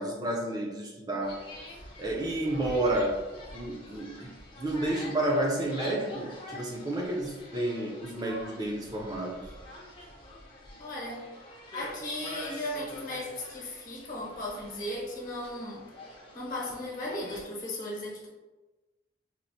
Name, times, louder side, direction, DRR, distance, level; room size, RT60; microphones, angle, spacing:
voice 1, 0.0-1.4 2.0-3.2 3.5-9.5, right 1 dB, 20° right, -2 dB, 0.4 m, -31 dB
sound 1, 1.2-17.4, left 1 dB, 30° left, 0.6 m, -46 dB
voice 2, 10.8-15.9 16.3-18.3, left 1 dB, 45° left, -3 dB, 0.9 m, -36 dB
4.2 x 2.0 x 2.6 m, 1.2 s
head